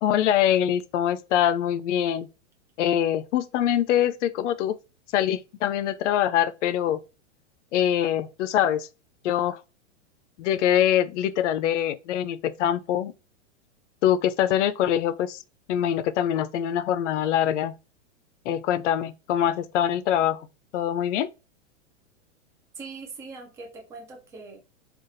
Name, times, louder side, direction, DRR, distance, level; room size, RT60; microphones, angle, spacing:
voice 1, 0.0-2.3 2.8-4.8 5.1-7.0 7.7-8.9 9.2-9.6 10.4-13.1 14.0-15.4 15.7-17.7 18.5-20.5 20.7-21.3, left 10 dB, 70° left, 0.5 m, -24 dB
voice 2, 22.8-24.6, right 4 dB, 10° right, 0.3 m, -41 dB
3.9 x 2.4 x 2.5 m
hypercardioid pair, 140°, 37 cm